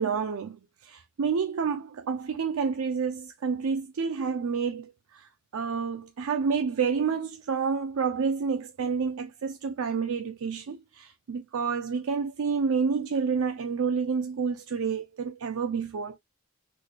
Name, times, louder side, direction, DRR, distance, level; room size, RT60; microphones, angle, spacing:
voice 1, 0.0-16.2, right 5 dB, 75° right, 0.4 m, -29 dB
3.8 x 2.2 x 3.1 m
head